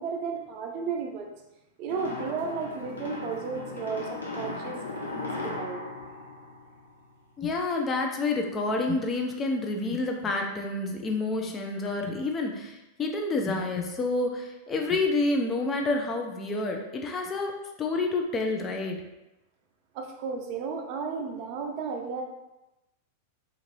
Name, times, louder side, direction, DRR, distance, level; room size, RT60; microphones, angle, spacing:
voice 1, 0.0-1.4 1.8-5.9 19.9-22.2, right 5 dB, 45° right, 3 dB, 0.5 m, -34 dB
sound 1, 1.9-7.2, left 2 dB, 80° left, 0.6 m, -37 dB
voice 2, 7.4-19.0, left 3 dB, 25° left, 2 dB, 0.5 m, -29 dB
2.6 x 2.5 x 3.2 m, 0.97 s
figure-of-eight pair, 95°, 0 cm